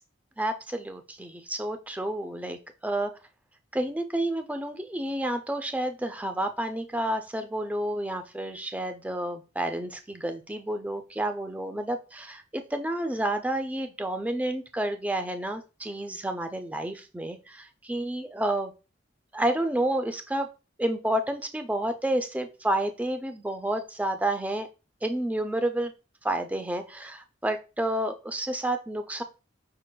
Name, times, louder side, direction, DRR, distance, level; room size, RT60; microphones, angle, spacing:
voice 1, 0.4-3.2 3.7-18.7 19.3-20.5 20.8-24.7 25.0-25.9 26.2-29.2, right 1 dB, 10° right, 7 dB, 0.4 m, -30 dB
5.3 x 3.7 x 2.2 m, 0.31 s
head